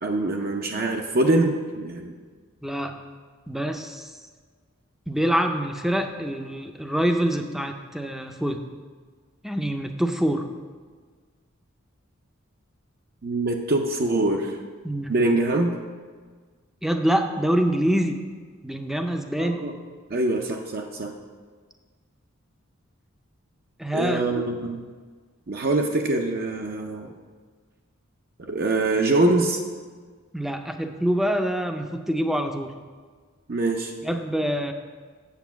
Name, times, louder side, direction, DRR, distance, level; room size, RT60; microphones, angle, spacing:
voice 1, 0.0-2.1 13.2-14.6 15.1-15.7 19.4-19.8 20.1-21.1 23.9-24.9 25.5-27.1 28.5-29.6 33.5-33.9, right 2 dB, 50° right, 2 dB, 0.6 m, -24 dB
voice 2, 2.6-3.0 3.5-4.1 5.1-8.6 9.4-10.5 14.8-15.1 16.8-18.2 18.6-19.6 23.8-24.4 30.3-32.8 34.0-34.7, equal, ahead, 6 dB, 0.5 m, -25 dB
8.2 x 7.1 x 5.8 m, 1.5 s
head